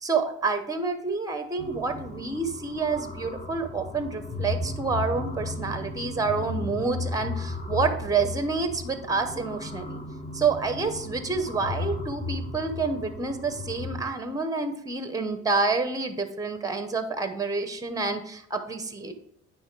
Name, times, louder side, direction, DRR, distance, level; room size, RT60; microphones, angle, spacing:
voice 1, 0.0-10.0 10.3-19.1, right 4 dB, 10° right, 9 dB, 0.8 m, -28 dB
sound 1, 1.6-14.0, left 2 dB, 25° left, 0.9 m, -35 dB
9.3 x 3.2 x 4.6 m, 0.73 s
cardioid pair, 90°, 30 cm